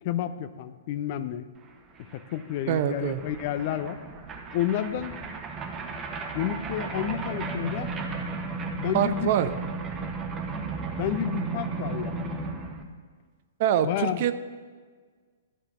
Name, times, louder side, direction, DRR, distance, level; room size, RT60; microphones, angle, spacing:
voice 1, 0.0-1.5 2.1-4.0 4.5-5.2 6.3-7.9 8.8-9.3 11.0-12.4 13.8-14.2, left 11 dB, 45° left, 13 dB, 0.5 m, -30 dB
sound 1, 1.7-1.8 1.9-12.8, right 4 dB, 20° right, 1.0 m, -34 dB
voice 2, 2.7-3.2 8.9-9.5 13.6-14.3, right 10 dB, 45° right, 12 dB, 0.5 m, -24 dB
12.0 x 5.1 x 7.2 m, 1.5 s
figure-of-eight pair, 110°, 0 cm